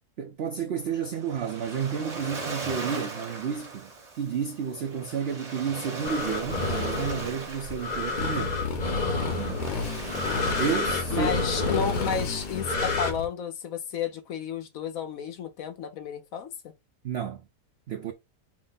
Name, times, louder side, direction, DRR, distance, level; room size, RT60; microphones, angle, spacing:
voice 1, 0.2-3.9 4.2-8.6 9.4-9.7 10.6-11.3 17.0-17.4 17.9-18.1, right 7 dB, 80° right, 0.5 m, -31 dB
Waves surf, 0.8-13.2, right 3 dB, 30° right, 0.8 m, -40 dB
sound 1, 6.0-13.1, left 3 dB, 40° left, 0.6 m, -30 dB
Motorcycle, 8.2-13.3, left 4 dB, 85° left, 1.6 m, -33 dB
voice 2, 11.1-16.7, left 7 dB, 65° left, 1.0 m, -32 dB
5.1 x 2.1 x 3.9 m
omnidirectional pair, 1.7 m